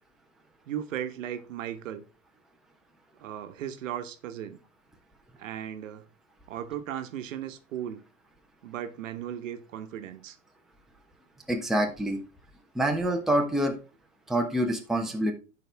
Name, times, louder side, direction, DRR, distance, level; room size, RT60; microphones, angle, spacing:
voice 1, 0.7-2.0 3.2-4.6 5.4-6.1 6.5-8.0 8.6-10.4, right 10 dB, 75° right, 1.2 m, -36 dB
voice 2, 11.5-12.2 12.7-13.8 14.3-15.3, right 1 dB, ahead, 1.0 m, -26 dB
11.5 x 4.7 x 3.5 m
hypercardioid pair, 130°, 39 cm